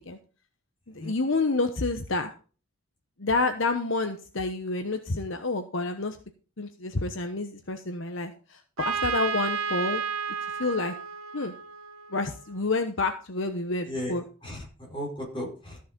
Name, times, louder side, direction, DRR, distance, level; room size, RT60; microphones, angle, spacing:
voice 1, 0.9-2.3 3.2-6.2 6.6-10.0 10.5-10.9 11.3-11.5 12.1-14.2, left 3 dB, 60° left, 8 dB, 1.0 m, -29 dB
Trumpet, 8.8-12.5, right 6 dB, 80° right, 1.8 m, -32 dB
voice 2, 13.8-15.8, equal, 25° left, -1 dB, 4.8 m, -36 dB
14.0 x 6.6 x 5.2 m, 0.37 s
head